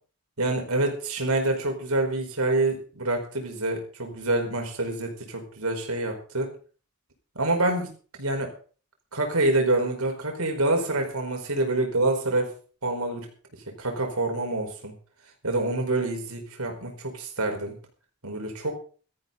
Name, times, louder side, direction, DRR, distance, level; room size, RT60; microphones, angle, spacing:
voice 1, 0.4-6.5 7.3-7.9 8.2-8.5 9.1-12.5 12.8-13.3 13.8-14.9 15.4-17.7 18.2-18.8, right 2 dB, 80° right, 3 dB, 4.9 m, -26 dB
16.5 x 13.5 x 4.1 m, 0.39 s
head